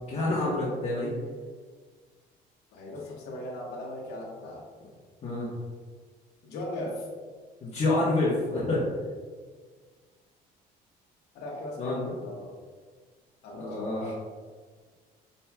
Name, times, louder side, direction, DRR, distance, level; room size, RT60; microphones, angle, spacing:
voice 1, 0.1-1.1 5.2-5.5 7.6-8.8 11.8-12.1 13.5-14.1, left 2 dB, 40° left, -8 dB, 1.2 m, -28 dB
voice 2, 2.7-4.7 6.4-7.1 11.3-12.6 13.4-14.1, left 1 dB, 75° left, -3 dB, 0.9 m, -38 dB
5.6 x 4.1 x 2.3 m, 1.5 s
cardioid pair, 110°, 17 cm